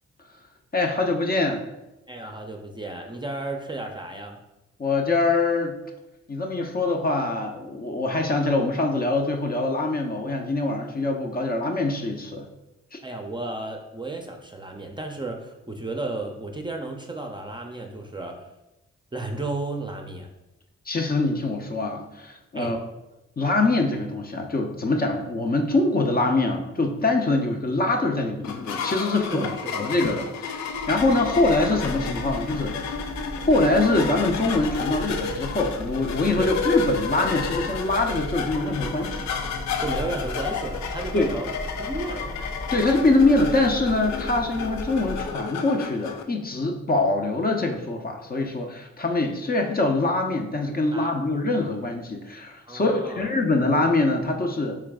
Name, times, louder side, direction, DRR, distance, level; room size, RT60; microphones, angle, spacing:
voice 1, 0.7-1.6 4.8-5.8 6.3-12.5 12.9-13.0 20.9-22.8 23.4-29.5 29.8-33.1 33.5-39.2 41.1-41.3 42.7-54.8, left 2 dB, 30° left, 3 dB, 0.7 m, -24 dB
voice 2, 2.1-4.4 13.0-18.4 19.1-20.3 22.5-22.8 29.3-29.9 36.3-36.5 39.8-41.5 41.8-42.4 50.9-51.1 52.6-53.3, right 2 dB, 15° right, 2 dB, 0.6 m, -33 dB
sound 1, 28.4-46.2, left 5 dB, 70° left, 0.5 m, -31 dB
Church bell, 30.6-45.6, equal, 50° left, 1.1 m, -37 dB
3.3 x 3.0 x 3.6 m, 0.96 s
supercardioid pair, 45°, 29 cm